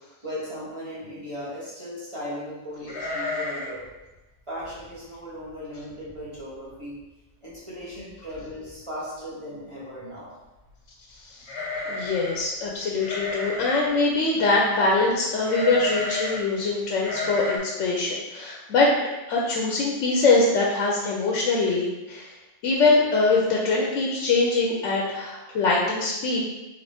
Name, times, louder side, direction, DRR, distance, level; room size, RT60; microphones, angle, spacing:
voice 1, 0.2-3.8 4.5-6.9 7.4-10.3, equal, 25° right, -9 dB, 1.5 m, -37 dB
sound 1, 2.9-3.8 4.1-4.2 4.6-4.9 5.5-5.6 5.9-6.4 6.7-6.8 7.9-8.0 8.3-8.8 11.4-12.4 13.0-14.0 15.4-16.4 17.0-17.6, left 3 dB, 65° left, 1.3 m, -31 dB
voice 2, 11.9-18.9 19.3-22.3 22.6-26.4, left 3 dB, 90° left, -2 dB, 1.0 m, -23 dB
3.9 x 3.5 x 3.4 m, 1.1 s
omnidirectional pair, 1.2 m